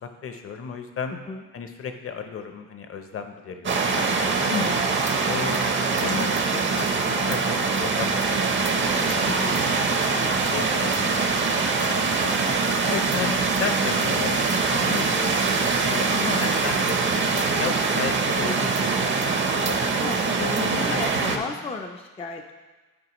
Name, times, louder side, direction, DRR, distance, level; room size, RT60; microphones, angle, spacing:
voice 1, 0.0-1.2 1.5-4.8 5.3-9.8 10.5-11.5 11.9-12.6 12.9-15.3 15.8-19.8 20.4-21.6, left 6 dB, 45° left, 7 dB, 0.8 m, -34 dB
sound 1, 3.6-21.4, right 4 dB, 40° right, 0.7 m, -23 dB
voice 2, 4.0-4.3 9.2-9.6 10.1-10.4 11.6-11.7 20.0-22.5, left 3 dB, 20° left, 3 dB, 0.4 m, -34 dB
9.7 x 4.4 x 3.0 m, 1.3 s
cardioid pair, 90°, 30 cm